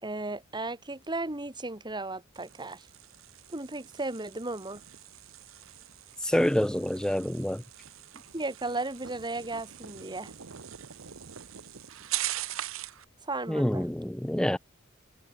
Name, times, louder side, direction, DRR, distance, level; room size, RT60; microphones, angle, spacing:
voice 1, 0.0-2.9 3.5-4.8 8.3-10.3 13.2-13.9, right 2 dB, 20° right, 2.8 m, -35 dB
sound 1, 2.3-13.1, right 13 dB, 80° right, 1.0 m, -41 dB
voice 2, 6.2-7.6 13.5-14.6, left 1 dB, 5° left, 0.3 m, -27 dB
head